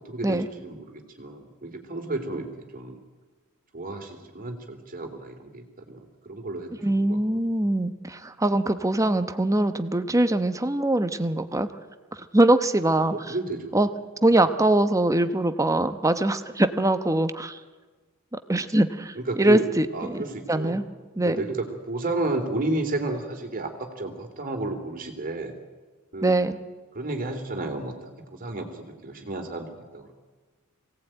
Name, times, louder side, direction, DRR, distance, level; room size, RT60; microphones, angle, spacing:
voice 1, 0.0-2.5 2.7-3.0 3.7-7.2 13.1-13.7 19.2-19.7 19.9-20.8 21.2-25.5 26.1-26.3 26.9-30.1, right 2 dB, 40° right, 4 dB, 3.3 m, -32 dB
voice 2, 6.8-11.7 12.3-13.3 13.7-13.9 14.2-17.6 18.3-20.2 20.5-20.8 21.2-21.4 26.2-26.6, right 1 dB, 15° right, 10 dB, 1.0 m, -23 dB
23.5 x 17.5 x 9.1 m, 1.3 s
head